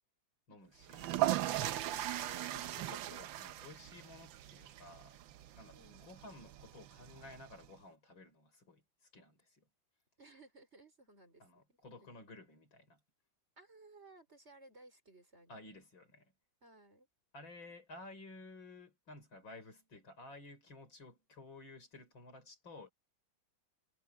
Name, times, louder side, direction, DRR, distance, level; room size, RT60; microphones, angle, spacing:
voice 1, 0.5-1.2 2.1-5.2 5.6-9.7 11.4-13.0 15.5-16.3 17.3-22.9, left 2 dB, 85° left, 6.9 m, -54 dB
sound 1, 0.8-7.7, right 14 dB, 85° right, 1.5 m, -39 dB
voice 2, 5.7-6.1 10.2-11.8 13.6-15.7 16.6-17.1, right 2 dB, 35° right, 5.1 m, -60 dB
omnidirectional pair, 2.1 m